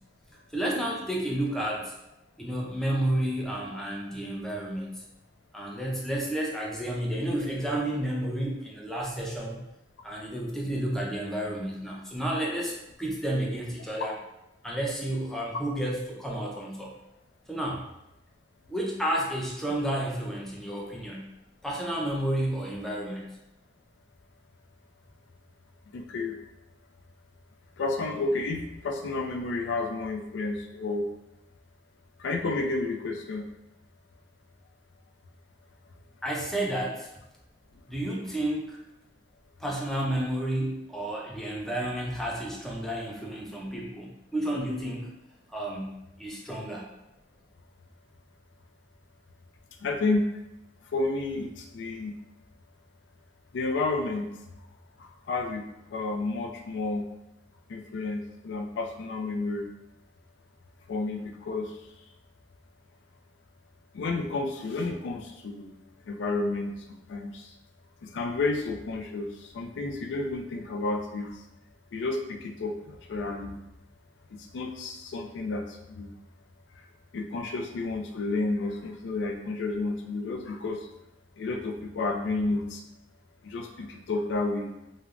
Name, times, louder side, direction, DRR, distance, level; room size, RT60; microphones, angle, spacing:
voice 1, 0.5-1.9 2.4-4.9 5.5-9.7 10.0-14.2 14.6-16.9 17.5-17.8 18.7-21.3 21.6-23.3 36.2-37.1 37.9-38.8 39.6-45.1 45.5-45.9 46.2-46.9, right 1 dB, ahead, -3 dB, 0.4 m, -31 dB
voice 2, 25.9-26.4 27.8-31.1 32.2-33.4 49.8-50.2 50.9-52.1 53.5-54.3 55.0-55.6 55.9-57.0 57.7-59.7 60.9-61.7 63.9-65.7 66.1-66.7 67.1-67.5 68.0-71.4 71.9-73.6 74.3-76.2 77.1-80.8 81.4-82.8 83.4-84.7, left 3 dB, 75° left, 4 dB, 0.4 m, -31 dB
3.2 x 2.0 x 2.4 m, 0.88 s
head